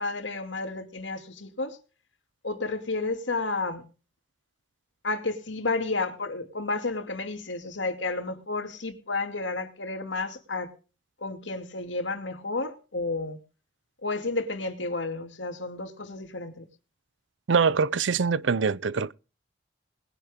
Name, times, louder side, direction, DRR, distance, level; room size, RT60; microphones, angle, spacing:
voice 1, 0.0-1.8 2.4-3.8 5.0-10.7 11.2-13.4 14.0-16.7, left 3 dB, 85° left, 2.5 m, -31 dB
voice 2, 17.5-19.1, right 5 dB, 85° right, 0.6 m, -24 dB
20.5 x 10.5 x 3.6 m
head